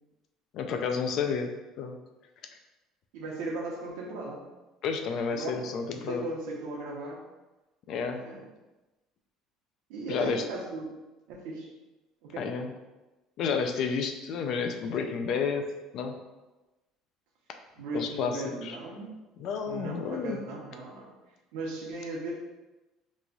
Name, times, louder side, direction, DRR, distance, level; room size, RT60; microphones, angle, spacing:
voice 1, 0.5-2.0 4.8-6.2 7.9-8.2 10.1-10.4 12.4-12.7 13.4-15.7 15.9-16.2 17.9-18.8 19.4-20.4, left 5 dB, 50° left, 5 dB, 0.4 m, -31 dB
voice 2, 3.1-4.4 5.3-5.6 5.9-7.2 8.1-8.5 9.9-10.9 11.3-11.7 12.2-12.5 17.8-19.1 19.6-21.1 21.5-22.3, right 2 dB, 80° right, -2 dB, 0.9 m, -37 dB
3.1 x 2.3 x 3.9 m, 1.1 s
cardioid pair, 145°, 0 cm